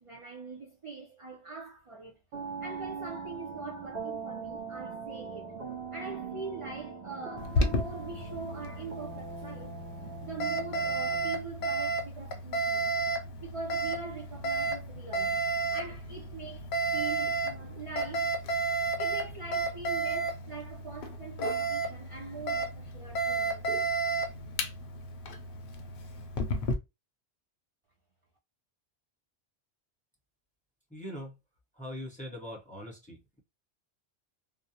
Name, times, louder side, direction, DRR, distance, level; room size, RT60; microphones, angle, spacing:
voice 1, 0.0-2.2 2.6-5.5 5.9-9.8 10.2-13.0 13.4-15.4 15.7-18.3 19.0-23.7, right 4 dB, 50° right, 0.4 m, -43 dB
sound 1, 2.3-11.4, right 5 dB, 65° right, 0.8 m, -41 dB
Alarm, 7.4-26.8, right 2 dB, 60° left, 0.6 m, -32 dB
voice 2, 30.9-31.3 31.8-33.4, equal, 10° left, 0.6 m, -42 dB
2.4 x 2.0 x 2.7 m
omnidirectional pair, 1.1 m